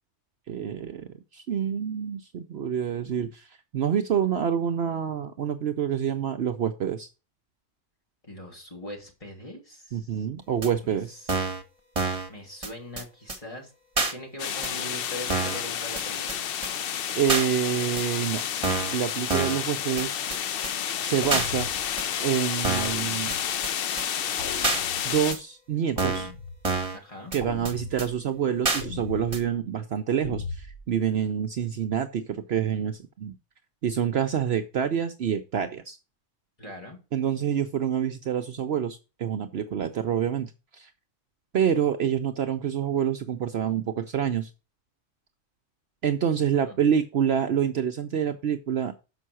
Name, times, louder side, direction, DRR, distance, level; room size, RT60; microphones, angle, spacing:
voice 1, 0.5-1.1 1.3-7.1 9.9-11.2 17.1-18.4 18.9-20.1 21.0-21.7 22.2-23.3 25.0-26.3 27.3-33.4 33.8-36.0 37.1-40.9 41.5-44.5 46.0-49.0, right 8 dB, 60° right, 8 dB, 0.9 m, -27 dB
voice 2, 8.2-10.3 10.8-11.3 12.3-13.7 14.1-16.4 26.9-27.3 36.6-37.0 46.5-46.8, left 1 dB, 25° left, 0 dB, 3.1 m, -41 dB
sound 1, 10.6-10.7 11.3-11.6 12.0-12.3 12.6-12.7 13.0-13.1 13.3-13.4 14.0-14.1 14.6-14.7 15.3-15.6 16.0-16.1 16.3-16.4 16.6-16.7 17.3-17.5 18.0-18.1 18.6-19.0 19.3-19.6 20.0-20.1 20.3-20.4 20.6-20.7 21.3-21.5 22.0-22.1 22.6-23.0 23.3-23.4 23.6-23.7 24.0-24.1 24.6-24.8 25.3-25.4 26.0-26.3 26.6-27.0 27.3-27.4 27.6-27.7 28.0-28.1 28.6-28.8 29.3-29.4, right 3 dB, 25° right, 1.4 m, -27 dB
sound 2, 14.4-25.3, left 9 dB, 55° left, 0.7 m, -30 dB
sound 3, 21.2-22.0 22.8-23.6 24.4-25.2 26.0-26.8 27.4-28.1 28.8-29.4 30.2-30.8, left 3 dB, 85° left, 3.9 m, -38 dB
6.9 x 5.6 x 6.1 m, 0.30 s
omnidirectional pair, 1.3 m